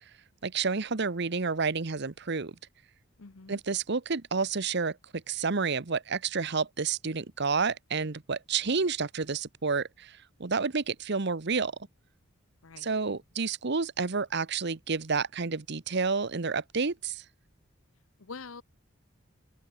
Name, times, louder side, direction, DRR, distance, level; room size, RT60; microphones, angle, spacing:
voice 1, 0.4-2.5 3.5-11.7 12.8-17.2, right 4 dB, 55° right, 1.0 m, -30 dB
voice 2, 3.2-3.6 12.6-12.9 18.2-18.6, left 4 dB, 90° left, 1.0 m, -44 dB
open air
head